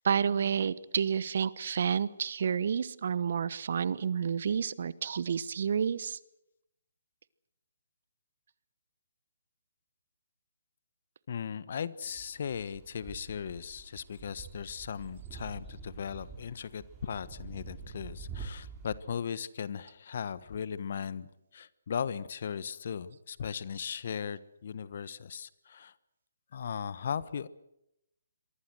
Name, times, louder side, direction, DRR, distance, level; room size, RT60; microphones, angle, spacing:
voice 1, 0.0-6.2, right 7 dB, 60° right, 19 dB, 1.1 m, -30 dB
voice 2, 11.3-25.9 26.5-27.5, left 7 dB, 55° left, 17 dB, 1.3 m, -37 dB
sound 1, 12.0-19.0, right 5 dB, 15° right, 5.7 m, -46 dB
27.0 x 23.5 x 6.4 m, 0.81 s
figure-of-eight pair, 145°, 0 cm